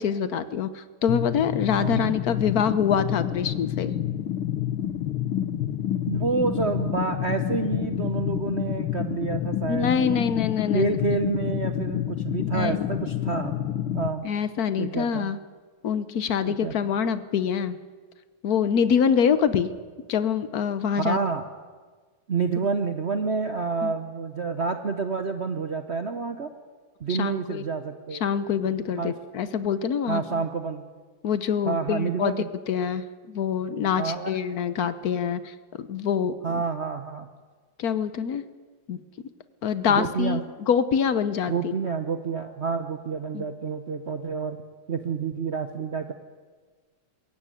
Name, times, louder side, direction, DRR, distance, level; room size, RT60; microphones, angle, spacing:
voice 1, 0.0-3.9 9.7-10.9 12.4-12.9 14.2-15.4 15.8-17.8 18.4-19.7 20.1-21.2 23.8-23.9 27.1-27.6 28.1-30.4 31.2-32.3 32.7-36.4 37.8-38.4 38.9-39.0 39.6-40.4 40.7-41.7 43.3-43.4, left 7 dB, 60° left, 13 dB, 1.1 m, -25 dB
sound 1, 1.1-14.1, left 11 dB, 75° left, 1.7 m, -29 dB
voice 2, 1.8-2.2 6.1-10.2 10.7-13.6 13.9-14.3 14.8-15.3 16.4-16.9 21.0-21.5 22.3-26.5 27.0-28.2 29.0-29.1 30.1-30.8 31.6-32.5 34.0-34.3 36.4-37.3 39.8-40.4 41.5-46.1, right 5 dB, 50° right, 7 dB, 0.8 m, -28 dB
21.5 x 16.0 x 9.1 m, 1.5 s
omnidirectional pair, 2.3 m